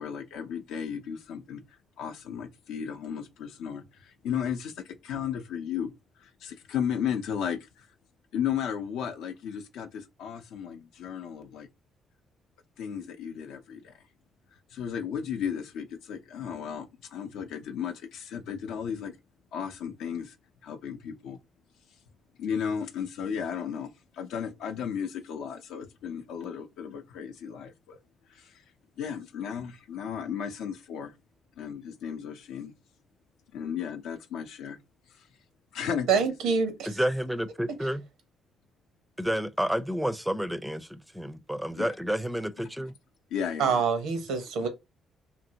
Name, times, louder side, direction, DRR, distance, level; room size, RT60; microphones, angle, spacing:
voice 1, 0.0-1.6 2.0-5.9 6.2-7.9 8.3-11.7 12.8-13.9 14.7-19.2 19.5-20.3 20.6-21.4 22.4-28.0 28.3-28.6 29.0-31.1 31.6-32.7 33.5-34.8 35.2-35.3 35.7-36.2 41.8-41.9 43.3-43.8, left 8 dB, 80° left, 0.5 m, -34 dB
voice 2, 36.1-36.9 43.6-44.7, right 5 dB, 80° right, 0.7 m, -26 dB
voice 3, 36.9-38.0 39.2-42.9 43.8-43.9, equal, 5° right, 0.4 m, -30 dB
2.8 x 2.5 x 2.7 m
supercardioid pair, 65°, 0 cm